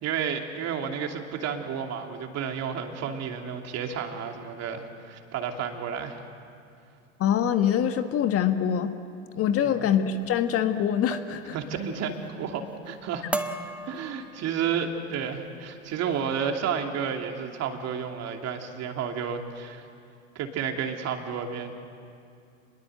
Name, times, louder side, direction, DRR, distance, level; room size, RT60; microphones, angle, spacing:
voice 1, 0.0-6.2 9.6-9.9 11.5-13.2 13.9-19.9 20.3-21.7, right 7 dB, 40° right, 4 dB, 2.8 m, -31 dB
voice 2, 7.2-8.9 9.3-11.5, left 9 dB, 35° left, 9 dB, 1.4 m, -24 dB
sound 1, 10.1-10.4 11.1-11.5 11.8-12.3 12.7-13.0 13.3-14.7 15.3-15.5 15.9-16.2, right 1 dB, 5° right, 1.2 m, -36 dB
27.5 x 21.5 x 7.9 m, 2.4 s
hypercardioid pair, 85°, 39 cm